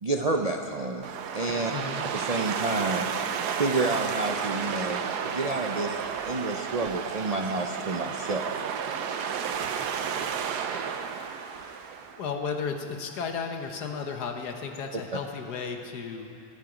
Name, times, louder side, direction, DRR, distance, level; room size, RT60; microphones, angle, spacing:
voice 1, 0.0-1.7 2.1-3.1 3.6-6.0 6.3-8.5 14.9-15.0, right 2 dB, 55° right, 2 dB, 0.4 m, -29 dB
sound 1, 1.0-12.2, right 7 dB, 80° right, 1.3 m, -32 dB
voice 2, 1.7-2.1 12.2-16.3, left 5 dB, 85° left, 4 dB, 1.7 m, -34 dB
25.0 x 10.0 x 5.0 m, 2.8 s
omnidirectional pair, 1.7 m